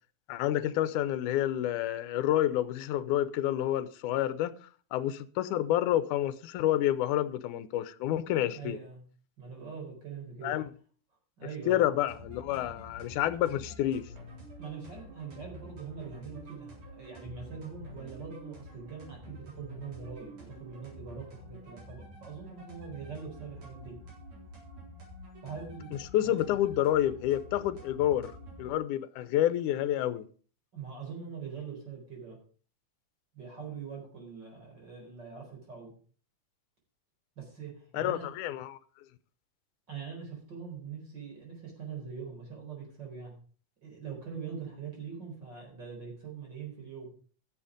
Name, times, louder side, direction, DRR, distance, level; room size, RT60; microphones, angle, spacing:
voice 1, 0.3-4.5 4.9-8.8 10.4-10.7 11.7-14.1 26.1-30.3 37.9-38.8, left 12 dB, 80° left, 2.2 m, -29 dB
voice 2, 8.5-9.0 9.4-10.5 11.4-11.8 14.6-24.0 25.4-26.4 30.7-32.4 33.3-35.9 37.4-38.3 39.9-43.3 43.8-47.1, right 6 dB, 35° right, 4.7 m, -43 dB
sound 1, 12.1-28.7, equal, 75° right, 5.5 m, -48 dB
14.5 x 7.2 x 5.0 m
omnidirectional pair, 3.6 m